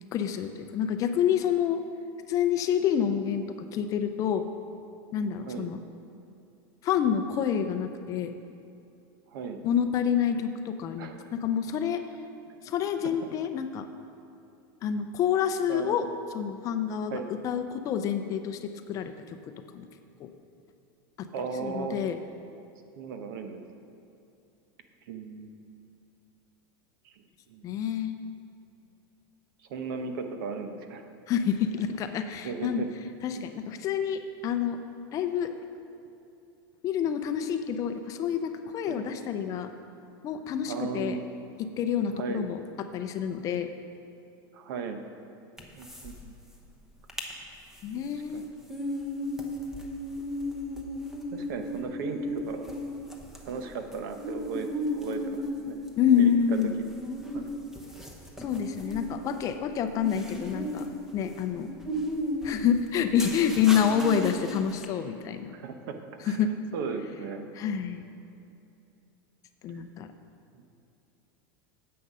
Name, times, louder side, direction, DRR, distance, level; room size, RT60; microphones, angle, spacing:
voice 1, 0.1-1.8 2.3-4.4 5.1-5.8 6.8-8.3 9.6-12.0 12.6-13.9 14.8-16.1 16.3-19.1 19.7-19.9 20.2-20.3 21.2-21.3 21.6-22.2 27.6-28.2 31.3-32.8 33.2-34.8 35.1-35.5 36.8-39.7 40.2-41.2 41.6-43.7 47.8-48.4 56.0-56.7 58.4-60.9 61.1-61.7 62.4-65.5 66.3-66.5 67.6-68.1 69.6-70.1, left 8 dB, 30° left, 8 dB, 0.5 m, -28 dB
voice 2, 5.4-5.7 9.3-9.6 11.0-11.3 15.7-16.1 17.1-17.3 21.3-22.2 23.0-23.6 25.1-25.5 27.0-27.1 27.5-27.7 29.7-31.0 32.4-32.9 33.4-33.5 38.9-39.0 40.7-41.3 42.2-42.5 44.5-45.0 45.7-46.3 48.1-48.4 51.3-52.7 53.4-55.8 56.1-56.3 57.3-57.6 65.5-66.0 66.2-66.4 66.7-67.5 70.5-70.6, right 5 dB, 65° right, 6 dB, 0.9 m, -36 dB
sound 1, 45.6-46.2 46.5-46.6 46.9-47.3 47.7-64.8, left 1 dB, 5° right, 0.8 m, -36 dB
9.8 x 7.7 x 5.4 m, 2.6 s
supercardioid pair, 160°, 12 cm